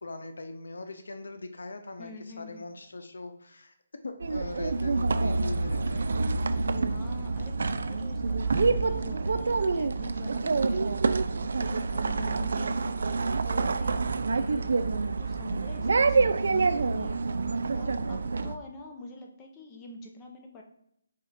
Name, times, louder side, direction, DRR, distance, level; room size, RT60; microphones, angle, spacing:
voice 1, 0.0-3.7 4.0-6.1 12.2-12.5, left 2 dB, 80° left, 6 dB, 0.6 m, -41 dB
voice 2, 2.0-2.7 6.9-13.2 13.4-17.4 17.7-20.6, left 2 dB, 20° left, 1 dB, 0.8 m, -46 dB
sound 1, 4.2-18.5, right 4 dB, 70° right, 0.3 m, -27 dB
Drum, 8.6-11.0, left 1 dB, 50° left, 0.9 m, -48 dB
4.9 x 2.4 x 4.2 m, 0.75 s
hypercardioid pair, 160°, 0 cm